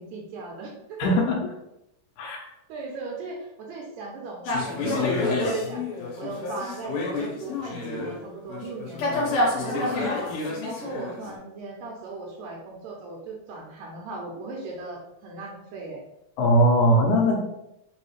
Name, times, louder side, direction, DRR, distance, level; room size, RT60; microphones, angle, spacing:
voice 1, 0.0-1.1 2.7-5.8 6.2-9.2 9.6-16.0, right 3 dB, 80° right, -1 dB, 2.0 m, -37 dB
voice 2, 1.0-1.4 2.2-2.4 16.4-17.4, equal, 90° left, -1 dB, 2.1 m, -20 dB
sound 1, 4.4-8.2 8.5-11.4, left 2 dB, 70° left, 2.2 m, -28 dB
5.0 x 2.7 x 3.1 m, 0.83 s
omnidirectional pair, 3.4 m